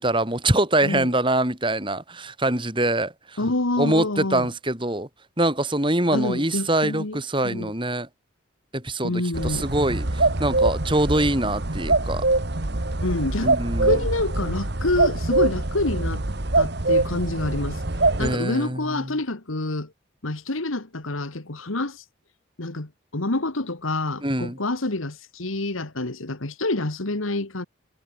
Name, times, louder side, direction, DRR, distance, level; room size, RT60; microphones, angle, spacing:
voice 1, 0.0-3.4 3.8-5.1 5.4-8.1 8.7-12.2 13.4-14.0 18.2-19.1 24.2-24.6, right 1 dB, 25° right, 4.9 m, -24 dB
voice 2, 3.4-4.5 6.1-7.7 9.0-9.7 13.0-13.5 13.8-16.2 16.6-17.8 18.2-19.9 20.2-22.0 22.6-27.6, left 2 dB, 85° left, 2.0 m, -27 dB
sound 1, 9.3-18.4, right 2 dB, 55° right, 1.6 m, -24 dB
head